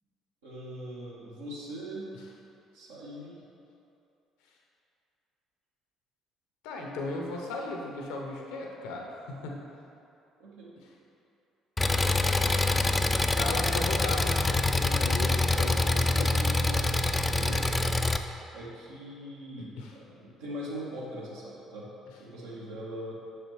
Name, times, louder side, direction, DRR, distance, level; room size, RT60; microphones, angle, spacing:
voice 1, 0.4-2.1 2.7-3.4 10.4-10.7 15.5-17.6 18.5-21.9 22.2-23.2, equal, 80° right, -6 dB, 1.2 m, -41 dB
voice 2, 6.6-9.6 12.7-16.3 17.5-17.6 19.8-19.9, left 2 dB, 75° left, 0 dB, 0.8 m, -37 dB
Engine, 11.8-18.2, left 2 dB, 15° left, 0.3 m, -25 dB
6.5 x 4.9 x 3.1 m, 2.7 s
hypercardioid pair, 55°, 0 cm